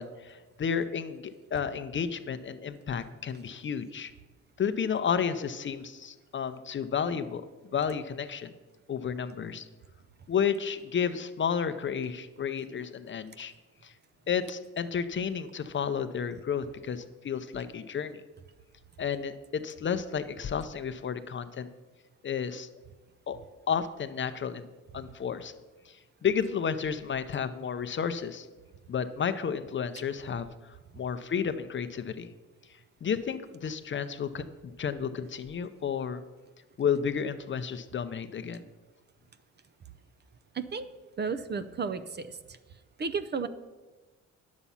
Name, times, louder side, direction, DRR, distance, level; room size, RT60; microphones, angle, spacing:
voice 1, 0.0-4.1 4.6-7.4 7.7-8.5 8.9-9.7 10.3-13.5 13.8-13.9 14.3-18.2 19.0-21.7 22.2-22.7 23.3-23.4 23.7-24.7 24.9-25.5 25.9-26.0 26.2-28.5 28.9-32.3 33.0-36.2 36.8-38.6, left 7 dB, 40° left, 11 dB, 0.6 m, -32 dB
voice 2, 40.5-40.9 41.2-42.4 43.0-43.5, right 5 dB, 35° right, 11 dB, 0.6 m, -33 dB
9.6 x 7.3 x 5.6 m, 1.2 s
cardioid pair, 90°, 30 cm